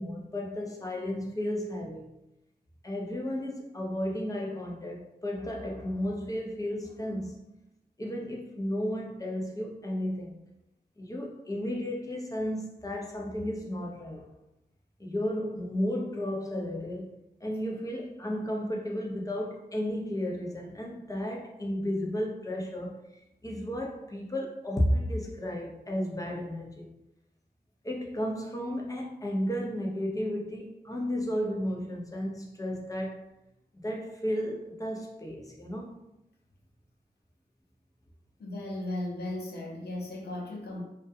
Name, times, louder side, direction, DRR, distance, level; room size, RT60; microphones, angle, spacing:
voice 1, 0.0-2.1 2.8-7.4 8.0-10.3 11.0-14.3 15.0-17.1 17.4-23.0 23.4-26.9 27.8-33.2 33.7-36.0, equal, 20° left, 0.6 m, -33 dB
voice 2, 38.4-40.8, left 1 dB, 85° left, 0.6 m, -36 dB
2.3 x 2.1 x 2.6 m
cardioid pair, 50°, 16 cm